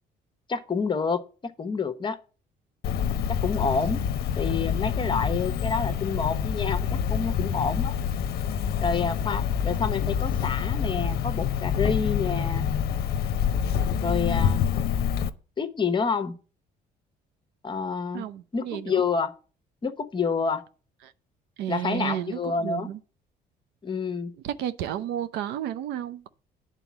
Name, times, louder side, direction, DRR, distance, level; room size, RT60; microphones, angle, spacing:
voice 1, 0.5-1.2 1.6-2.2 3.3-4.0 4.4-7.9 8.8-12.7 14.0-14.7 15.6-16.3 17.6-18.2 18.5-19.3 19.8-20.6 21.7-22.9 23.8-24.3, left 5 dB, 30° left, 1.0 m, -28 dB
Cricket, 2.8-15.3, left 8 dB, 65° left, 0.7 m, -27 dB
voice 2, 18.1-19.0 21.6-23.0 24.4-26.3, right 11 dB, 90° right, 0.7 m, -32 dB
8.9 x 4.1 x 7.2 m
cardioid pair, 110°, 17 cm